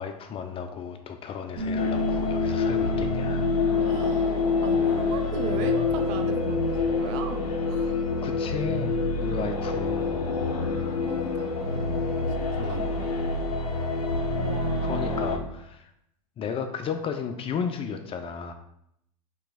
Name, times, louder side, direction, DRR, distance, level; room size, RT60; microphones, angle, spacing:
voice 1, 0.0-3.5 8.2-10.2 12.5-13.0 14.8-15.9 16.4-18.5, left 6 dB, 30° left, 6 dB, 0.4 m, -34 dB
sound 1, 1.6-7.0, left 2 dB, 75° right, 1.0 m, -35 dB
sound 2, 1.7-15.4, left 3 dB, 80° left, 0.6 m, -26 dB
voice 2, 3.8-7.9 11.0-12.0 12.4-13.2 14.3-15.3, right 7 dB, 55° right, 7 dB, 0.4 m, -38 dB
3.2 x 3.0 x 3.3 m, 0.75 s
hypercardioid pair, 80°, 19 cm